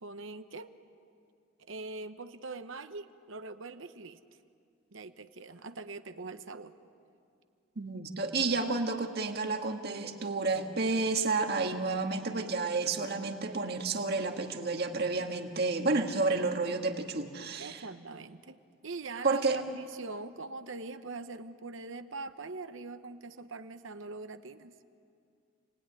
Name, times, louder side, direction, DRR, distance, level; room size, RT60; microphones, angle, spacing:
voice 1, 0.0-0.7 1.6-4.2 4.9-6.8 17.6-24.7, right 3 dB, 65° right, 9 dB, 1.0 m, -43 dB
voice 2, 7.8-17.8 19.2-19.6, right 3 dB, 50° right, 4 dB, 1.9 m, -30 dB
29.0 x 19.5 x 9.8 m, 2.4 s
head